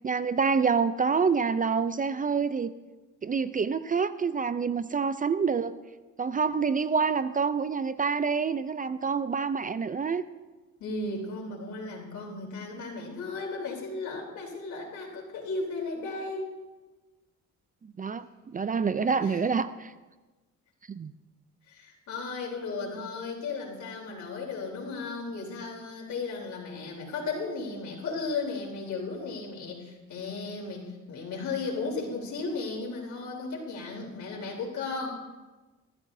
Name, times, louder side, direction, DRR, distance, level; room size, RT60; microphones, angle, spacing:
voice 1, 0.0-2.7 3.2-5.7 6.2-10.2 18.0-19.9 20.9-21.1, right 5 dB, 30° right, 14 dB, 0.4 m, -27 dB
voice 2, 10.8-16.5 19.2-19.4 21.7-35.1, left 3 dB, 70° left, -1 dB, 3.6 m, -35 dB
20.5 x 13.5 x 2.7 m, 1.2 s
cardioid pair, 90°, 30 cm